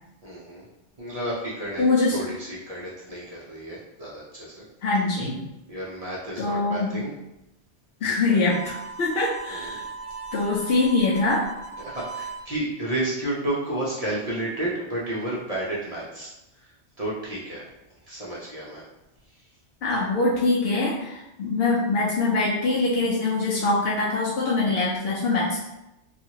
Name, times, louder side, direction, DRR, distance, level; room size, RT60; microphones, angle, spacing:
voice 1, 0.2-0.7 1.0-1.8 2.1-4.6 5.7-7.1 8.3-8.4 9.5-9.8 11.8-16.3 17.0-17.6 18.1-18.8, right 1 dB, 50° right, -6 dB, 0.5 m, -31 dB
voice 2, 1.8-2.2 4.8-5.4 6.4-6.9 8.0-9.8 10.3-11.5 19.8-25.6, left 3 dB, 65° left, -5 dB, 0.7 m, -23 dB
Harmonica, 8.4-12.5, right 4 dB, 10° left, 0.9 m, -38 dB
2.8 x 2.4 x 2.8 m, 0.93 s
omnidirectional pair, 1.2 m